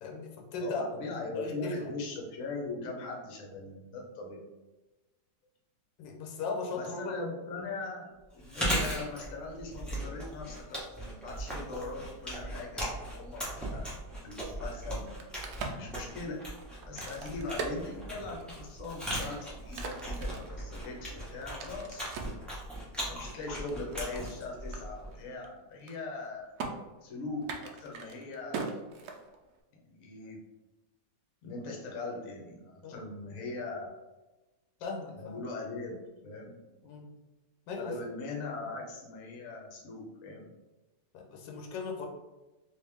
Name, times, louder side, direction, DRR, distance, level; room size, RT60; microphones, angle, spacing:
voice 1, 0.0-1.9 6.0-7.2 32.8-33.0 34.8-35.4 36.8-37.2 37.7-38.0 41.1-42.1, left 3 dB, 90° left, 1 dB, 1.4 m, -38 dB
voice 2, 0.5-4.4 6.7-15.1 15.7-16.4 16.9-22.1 23.1-26.5 27.0-28.7 29.8-30.4 31.4-34.0 35.1-36.6 37.8-40.5, left 3 dB, 55° left, 0 dB, 1.1 m, -40 dB
Chewing mastication, 8.4-25.2, right 1 dB, ahead, 0.6 m, -38 dB
Crack, 15.1-18.6 19.1-22.4 23.0-24.4 24.7-24.8 25.1-25.5 25.7-26.3 26.6-26.7 27.4-29.6, right 4 dB, 70° right, 1.0 m, -41 dB
3.3 x 2.9 x 3.4 m, 1.1 s
omnidirectional pair, 1.9 m